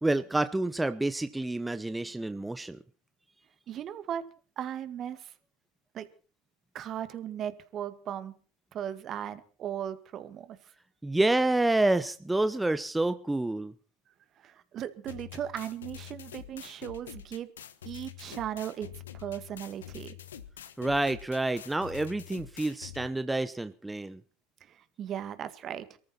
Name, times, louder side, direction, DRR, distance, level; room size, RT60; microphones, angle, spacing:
voice 1, 0.0-2.8 11.0-13.7 20.8-24.2, right 2 dB, 10° right, 11 dB, 0.9 m, -28 dB
voice 2, 3.7-4.2 4.6-5.3 5.9-6.1 6.7-8.3 8.7-10.6 14.4-17.5 17.8-20.2 24.6-26.0, right 10 dB, 45° right, 12 dB, 1.9 m, -37 dB
sound 1, 15.1-23.1, left 10 dB, 90° left, 1.3 m, -46 dB
23.5 x 14.0 x 4.4 m, 0.40 s
hypercardioid pair, 80°, 0 cm